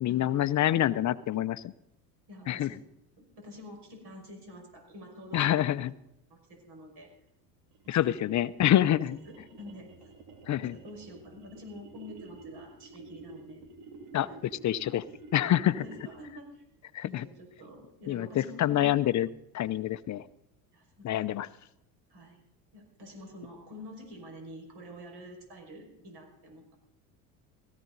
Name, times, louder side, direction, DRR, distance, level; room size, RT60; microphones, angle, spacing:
voice 1, 0.0-1.6 2.5-2.7 5.3-5.9 7.9-9.2 10.5-10.8 14.1-15.0 15.3-15.7 16.9-17.2 18.1-19.3 19.5-20.2 21.0-21.5, left 12 dB, 35° left, 15 dB, 0.6 m, -26 dB
voice 2, 2.3-2.8 3.2-5.6 6.3-7.1 7.9-8.0 8.7-9.0 9.2-9.9 10.7-13.6 14.2-14.4 15.6-16.6 17.0-18.9 20.7-21.2 22.1-22.4 22.7-26.8, left 1 dB, 50° right, 2 dB, 5.7 m, -47 dB
sound 1, 7.7-16.4, right 3 dB, 75° right, 2.6 m, -50 dB
17.5 x 14.5 x 4.0 m, 0.82 s
hypercardioid pair, 75°, 49 cm